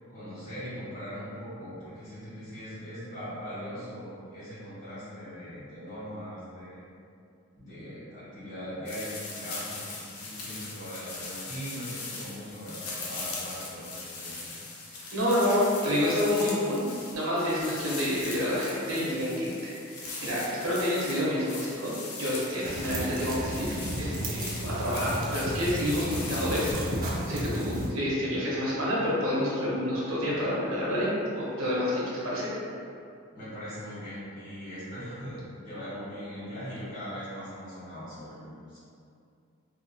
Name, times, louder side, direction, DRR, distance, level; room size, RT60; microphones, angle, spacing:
voice 1, 0.1-6.8 7.6-14.6 33.3-38.8, equal, 35° left, -13 dB, 1.3 m, -40 dB
sound 1, 8.9-26.7, left 3 dB, 85° left, 0.5 m, -40 dB
voice 2, 15.1-16.8 17.1-31.1 31.3-32.5, left 1 dB, 75° right, -6 dB, 0.7 m, -28 dB
sound 2, 22.6-27.9, right 1 dB, 40° right, 0.3 m, -33 dB
2.7 x 2.3 x 2.6 m, 2.5 s
head